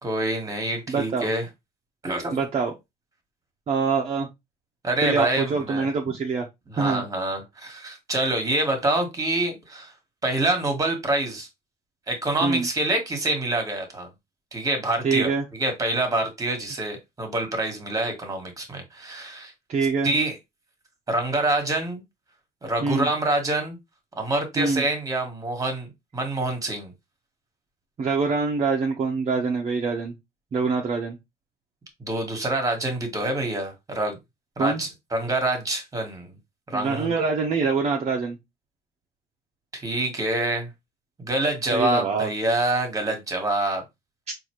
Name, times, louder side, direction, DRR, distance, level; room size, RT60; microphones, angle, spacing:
voice 1, 0.0-1.4 2.0-2.4 4.8-5.9 6.7-9.9 10.2-11.5 12.1-14.1 14.5-19.5 20.0-20.4 21.1-22.0 22.6-23.8 24.2-25.9 26.1-26.9 32.0-34.2 34.6-36.4 36.7-37.1 39.7-40.7 41.2-43.8, right 2 dB, 20° right, 1.5 m, -26 dB
voice 2, 0.9-1.3 2.3-2.7 3.7-4.3 5.0-6.4 6.8-7.0 12.4-12.7 15.0-15.4 19.7-20.1 22.8-23.1 24.6-24.8 28.0-30.1 30.5-31.2 34.6-34.8 36.7-38.4 41.7-42.3, right 4 dB, 40° right, 0.8 m, -24 dB
4.0 x 2.7 x 3.0 m
cardioid pair, 110°, 17 cm